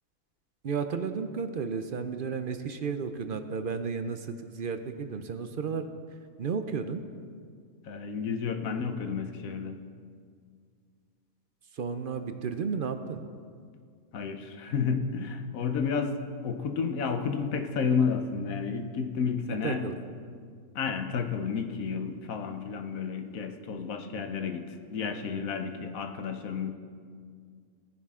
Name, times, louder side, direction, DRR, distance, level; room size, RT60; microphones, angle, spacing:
voice 1, 0.6-5.9 6.4-7.0 11.7-13.2 19.6-20.0, right 5 dB, 50° right, 8 dB, 0.7 m, -33 dB
voice 2, 7.8-9.8 14.1-16.2 16.4-19.8 20.7-24.6 24.9-26.7, left 6 dB, 85° left, 7 dB, 1.3 m, -31 dB
18.0 x 10.0 x 3.7 m, 2.1 s
omnidirectional pair, 1.4 m